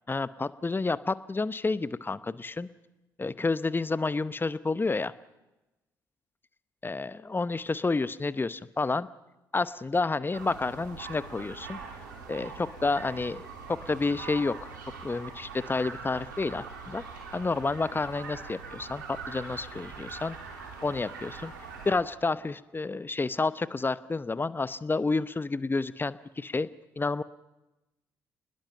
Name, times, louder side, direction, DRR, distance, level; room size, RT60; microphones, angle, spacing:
voice 1, 0.1-2.7 3.2-5.1 6.8-9.1 9.5-11.8 12.3-14.7 15.0-17.0 17.3-21.5 21.8-26.7 27.0-27.2, left 3 dB, 20° left, 16 dB, 0.9 m, -30 dB
sound 1, 10.3-21.9, right 5 dB, 80° right, 3.0 m, -43 dB
28.0 x 20.5 x 5.7 m, 1.0 s
figure-of-eight pair, 45°, 10 cm